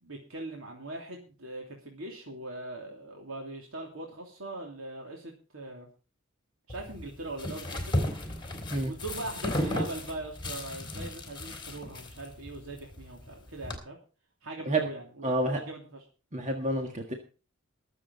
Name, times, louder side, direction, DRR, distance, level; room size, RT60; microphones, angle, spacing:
voice 1, 0.0-5.9 6.7-8.0 8.8-14.0 14.4-16.0, right 2 dB, 80° right, 0 dB, 3.0 m, -41 dB
sound 1, 6.7-13.8, left 1 dB, 20° left, 3.5 m, -35 dB
voice 2, 15.2-15.6 16.3-17.1, right 1 dB, 35° right, 3 dB, 1.7 m, -29 dB
22.0 x 7.7 x 4.1 m, 0.35 s
head